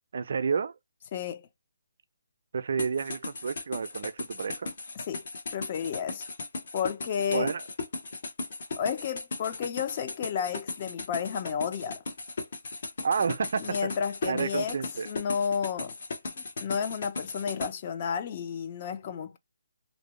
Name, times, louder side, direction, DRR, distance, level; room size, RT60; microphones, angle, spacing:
voice 1, 0.1-0.7 2.5-4.7 7.3-7.6 13.0-13.9 14.2-15.1, right 5 dB, 55° right, 0.4 m, -30 dB
voice 2, 1.1-1.5 5.1-5.2 5.5-6.3 6.7-7.5 8.8-12.0 13.6-14.8 15.1-16.0 16.3-19.4, left 7 dB, 35° left, 0.4 m, -32 dB
sound 1, 2.8-17.7, left 3 dB, 55° left, 0.9 m, -37 dB
2.6 x 2.0 x 3.0 m
figure-of-eight pair, 150°, 0 cm